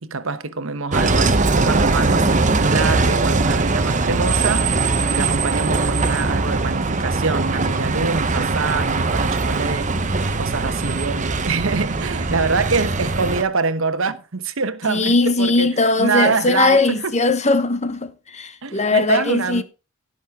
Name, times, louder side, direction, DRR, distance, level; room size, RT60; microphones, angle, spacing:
voice 1, 0.0-4.7 5.1-9.9 10.4-17.1 18.6-19.6, right 4 dB, 70° right, 1.1 m, -25 dB
Bus, 0.9-13.4, right 3 dB, 35° right, 1.0 m, -20 dB
voice 2, 14.8-19.6, left 3 dB, 35° left, 1.1 m, -19 dB
16.5 x 6.4 x 3.7 m
head